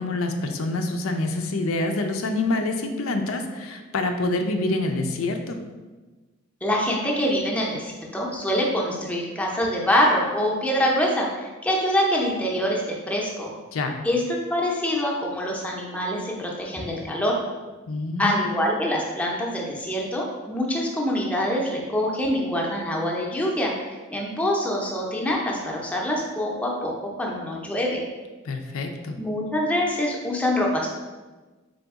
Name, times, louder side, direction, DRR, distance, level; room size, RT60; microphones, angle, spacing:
voice 1, 0.0-5.6 13.7-13.9 17.9-18.4 28.4-29.2, left 2 dB, 85° left, 5 dB, 0.5 m, -26 dB
voice 2, 6.6-13.5 14.0-14.2 14.5-17.4 18.2-23.7 24.1-28.0 29.2-30.9, equal, 5° left, -2 dB, 0.6 m, -25 dB
3.9 x 3.4 x 3.5 m, 1.3 s
head